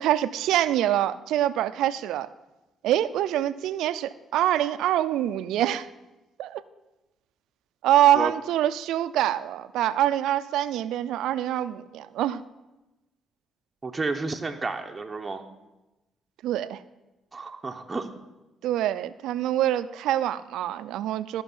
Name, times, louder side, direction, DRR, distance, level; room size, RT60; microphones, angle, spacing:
voice 1, 0.0-2.3 2.8-5.9 6.4-6.6 7.8-12.4 16.4-16.8 18.6-21.4, right 12 dB, 85° right, 14 dB, 0.4 m, -25 dB
voice 2, 13.8-15.4 17.3-18.1, right 3 dB, 20° right, 3 dB, 0.8 m, -31 dB
14.0 x 5.9 x 5.5 m, 1.0 s
cardioid pair, 90°, 0 cm